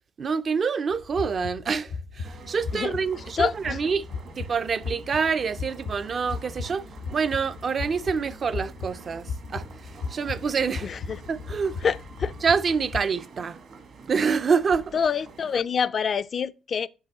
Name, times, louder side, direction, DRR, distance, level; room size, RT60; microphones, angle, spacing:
voice 1, 0.2-4.1 4.4-6.9 7.1-9.7 10.1-10.9 11.3-11.8 12.4-13.6 14.1-15.0, right 5 dB, 45° right, 0.5 m, -26 dB
sound 1, 0.9-13.0, left 5 dB, 80° left, 0.8 m, -37 dB
sound 2, 2.2-15.6, right 5 dB, 65° right, 1.5 m, -48 dB
voice 2, 3.4-3.8 10.8-11.2 11.8-12.3 14.9-16.9, left 6 dB, 50° left, 0.4 m, -26 dB
6.4 x 5.4 x 2.9 m
cardioid pair, 90°, 0 cm